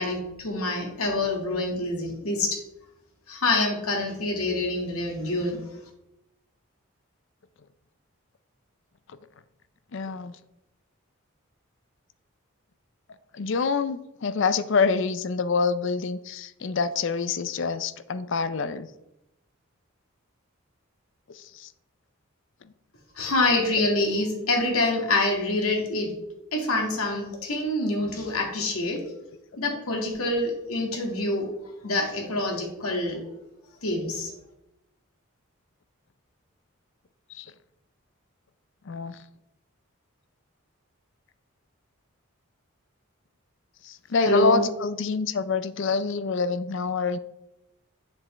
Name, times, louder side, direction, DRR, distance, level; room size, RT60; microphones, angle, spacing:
voice 1, 0.0-2.6 3.3-5.7 23.2-26.2 26.5-29.1 29.6-31.5 31.8-33.2 33.8-34.3 44.2-44.6, left 2 dB, 90° left, 1 dB, 2.1 m, -26 dB
voice 2, 9.9-10.3 13.3-18.9 21.3-21.7 37.3-37.5 38.9-39.2 43.8-47.2, left 4 dB, 60° left, 14 dB, 0.5 m, -26 dB
7.6 x 7.4 x 3.3 m, 0.87 s
head